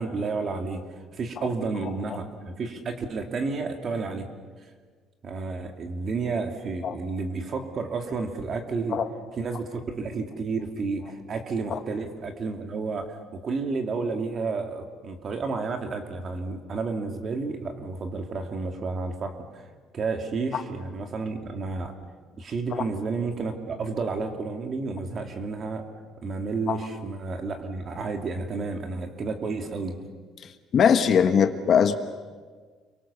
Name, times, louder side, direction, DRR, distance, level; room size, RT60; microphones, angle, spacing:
voice 1, 0.0-4.2 5.2-9.0 9.4-21.9 22.4-25.8 26.2-30.0, right 4 dB, 30° right, 5 dB, 2.6 m, -31 dB
voice 2, 30.7-31.9, left 7 dB, 40° left, 8 dB, 1.3 m, -21 dB
30.0 x 24.0 x 7.1 m, 1.5 s
cardioid pair, 175°, 0 cm